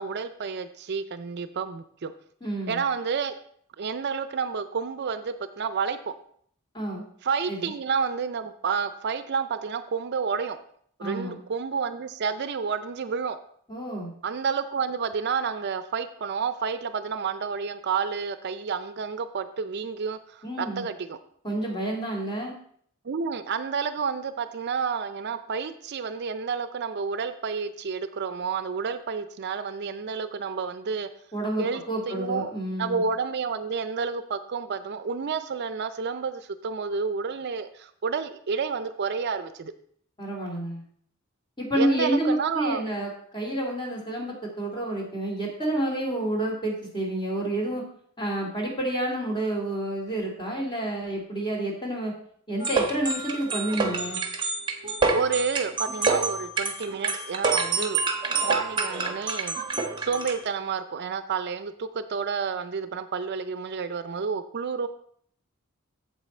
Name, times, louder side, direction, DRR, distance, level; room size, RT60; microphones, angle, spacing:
voice 1, 0.0-2.1 2.7-3.3 3.8-6.1 7.2-10.6 11.0-13.4 14.2-21.2 23.0-31.1 31.6-32.5 32.8-39.7 41.8-42.8 55.1-58.0 58.4-59.6 60.0-64.9, right 5 dB, 50° right, 12 dB, 0.4 m, -30 dB
voice 2, 2.4-2.8 6.7-7.0 7.5-7.7 11.0-11.4 13.7-14.1 20.4-20.8 21.4-22.5 31.3-33.0 40.2-40.8 41.6-47.8 48.2-52.1 52.5-54.2, right 1 dB, 20° left, -1 dB, 2.4 m, -29 dB
sound 1, 52.6-60.5, right 4 dB, 25° right, 1.0 m, -27 dB
8.2 x 7.5 x 4.2 m, 0.63 s
head